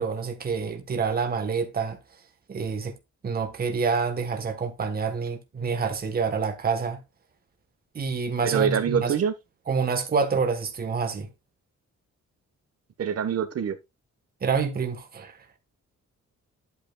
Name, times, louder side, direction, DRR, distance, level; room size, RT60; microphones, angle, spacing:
voice 1, 0.0-2.0 2.5-3.0 3.2-7.0 7.9-9.2 9.7-11.3 14.4-15.4, right 5 dB, 30° right, 1.2 m, -27 dB
voice 2, 8.4-9.3 13.0-13.8, right 8 dB, 55° right, 1.2 m, -25 dB
11.0 x 8.3 x 2.3 m
wide cardioid pair, 150°, 30 cm